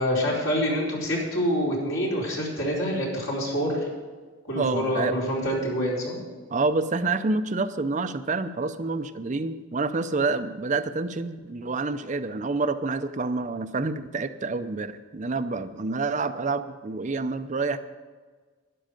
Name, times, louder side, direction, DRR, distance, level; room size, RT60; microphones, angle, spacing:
voice 1, 0.0-3.9 4.5-6.2, equal, 80° left, -4 dB, 4.6 m, -26 dB
voice 2, 4.5-5.2 6.5-17.8, right 3 dB, 35° right, 10 dB, 0.5 m, -28 dB
12.5 x 11.0 x 5.2 m, 1.4 s
head